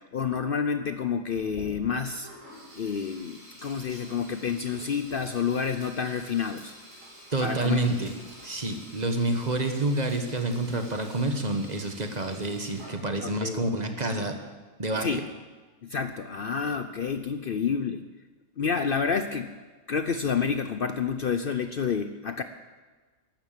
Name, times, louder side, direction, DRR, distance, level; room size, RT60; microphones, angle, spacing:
voice 1, 0.1-2.3 2.8-6.7 7.4-7.8 13.2-13.6 15.0-15.2 15.8-18.0 18.6-19.5 19.9-22.4, left 6 dB, 55° left, 9 dB, 0.7 m, -29 dB
Sink (filling or washing), 1.3-13.4, equal, 80° right, 4.9 m, -48 dB
voice 2, 7.3-8.1 8.4-14.4 14.8-15.2, right 2 dB, 35° right, 6 dB, 1.4 m, -28 dB
13.5 x 12.0 x 7.5 m, 1.3 s
omnidirectional pair, 1.3 m